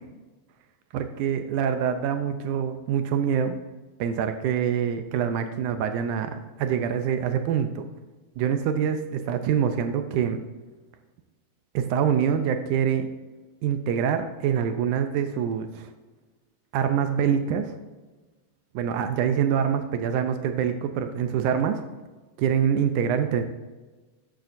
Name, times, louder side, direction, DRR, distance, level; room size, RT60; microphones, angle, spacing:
voice 1, 0.9-3.6 4.0-7.9 8.4-10.4 11.7-13.1 13.6-15.9 16.7-17.8 18.7-21.8 22.4-23.4, right 8 dB, 80° right, 8 dB, 2.0 m, -25 dB
12.5 x 8.9 x 2.6 m, 1.2 s
omnidirectional pair, 3.7 m